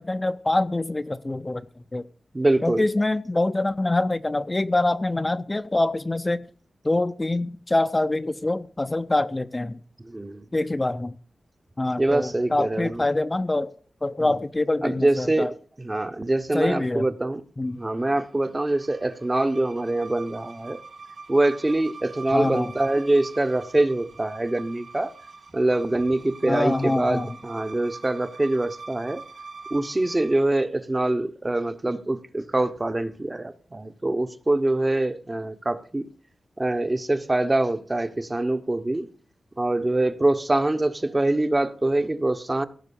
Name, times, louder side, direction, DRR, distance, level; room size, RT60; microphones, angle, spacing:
voice 1, 0.0-1.6 1.9-2.0 2.6-6.4 6.8-9.8 10.5-11.2 11.8-13.7 14.0-15.5 16.5-17.1 17.6-17.8 22.3-22.7 26.5-27.3, left 2 dB, 20° left, 0.5 m, -25 dB
voice 2, 2.3-2.9 10.0-10.4 12.0-13.0 14.8-17.4 17.7-20.8 21.3-25.1 25.5-29.2 29.7-36.1 36.6-39.1 39.6-42.7, right 2 dB, 20° right, 0.8 m, -24 dB
sound 1, 17.8-30.5, right 4 dB, 70° right, 3.6 m, -44 dB
17.0 x 6.1 x 6.9 m
wide cardioid pair, 145°, 0 cm